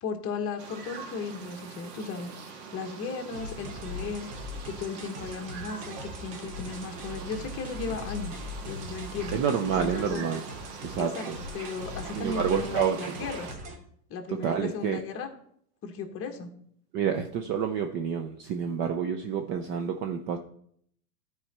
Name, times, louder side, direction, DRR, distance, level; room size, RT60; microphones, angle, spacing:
voice 1, 0.0-4.3 4.6-9.4 9.7-10.2 11.0-11.3 11.5-13.6 14.1-15.3 15.8-16.5, left 5 dB, 30° left, 4 dB, 1.4 m, -36 dB
sound 1, 0.6-13.6, right 5 dB, 45° right, 1.6 m, -44 dB
sound 2, 3.3-13.8, left 1 dB, 75° right, 2.5 m, -40 dB
voice 2, 9.3-10.4 10.8-11.3 12.1-13.0 14.3-15.0 16.9-20.4, right 7 dB, 25° right, 6 dB, 0.5 m, -28 dB
12.5 x 4.8 x 4.3 m, 0.65 s
hypercardioid pair, 120°, 48 cm